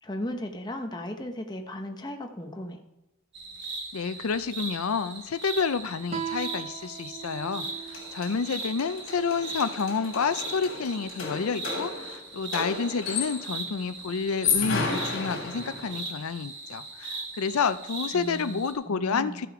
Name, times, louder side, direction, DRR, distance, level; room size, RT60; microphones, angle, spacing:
voice 1, 0.0-2.8 18.1-19.5, left 1 dB, 20° left, 4 dB, 0.9 m, -36 dB
sound 1, 3.3-18.7, right 3 dB, 55° right, 2.4 m, -39 dB
voice 2, 3.9-19.5, left 5 dB, 85° left, 13 dB, 0.5 m, -29 dB
Guitar, 6.1-9.3, right 8 dB, 30° right, 0.5 m, -39 dB
sound 2, 7.6-7.7 7.9-13.6 14.2-16.1, left 5 dB, 60° left, 3.0 m, -33 dB
14.0 x 6.8 x 4.9 m, 0.96 s
head